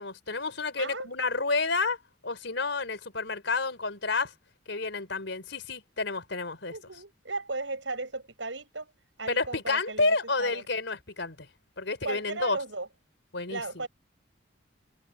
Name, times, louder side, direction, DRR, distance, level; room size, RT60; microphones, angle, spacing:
voice 1, 0.0-2.0 2.2-4.3 4.7-6.7 9.3-11.5 11.8-12.6 13.3-13.6, left 3 dB, 70° left, 4.3 m, -30 dB
voice 2, 0.8-1.1 6.7-8.9 9.2-10.6 12.0-12.9 13.5-13.9, right 3 dB, 75° right, 7.0 m, -36 dB
head